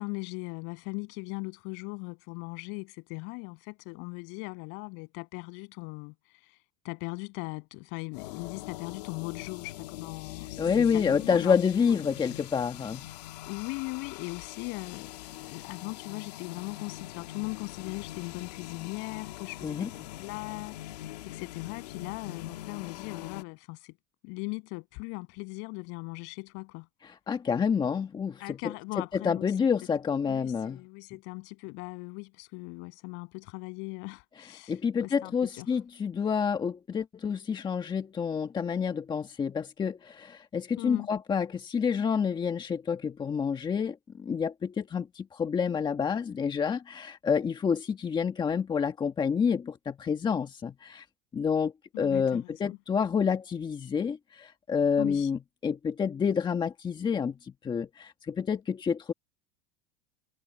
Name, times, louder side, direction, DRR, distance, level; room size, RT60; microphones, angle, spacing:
voice 1, 0.0-6.1 6.4-6.5 6.8-12.1 13.4-20.8 21.2-23.9 24.2-26.9 28.4-29.5 30.3-35.7 40.8-41.1 51.9-52.8 55.0-55.3, left 31 dB, 65° left, 8.0 m, -39 dB
sound 1, 8.1-23.4, left 15 dB, 90° left, 1.9 m, -43 dB
voice 2, 10.6-13.0 19.6-19.9 27.0-28.7 29.1-30.8 34.4-51.0 51.3-59.1, left 6 dB, 20° left, 1.4 m, -28 dB
supercardioid pair, 120°, 20 cm